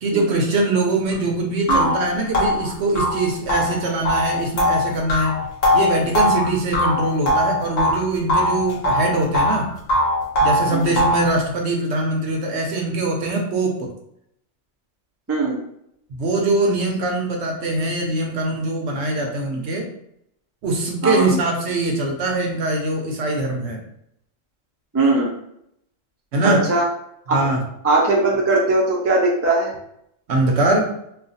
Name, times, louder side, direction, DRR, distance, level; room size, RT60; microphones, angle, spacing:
voice 1, 0.0-5.4 5.7-9.7 10.4-13.9 16.1-19.9 20.6-23.8 26.3-26.6 27.3-27.6 30.3-30.9, right 2 dB, 65° right, 1 dB, 0.8 m, -22 dB
sound 1, 1.1-1.2 1.7-8.0 8.3-9.6 9.9-11.3, left 1 dB, 40° left, 0.8 m, -20 dB
voice 2, 24.9-25.3 26.4-26.9 27.3-27.4 27.8-29.7, right 2 dB, 20° right, -3 dB, 0.4 m, -19 dB
2.4 x 2.4 x 3.9 m, 0.74 s
omnidirectional pair, 1.3 m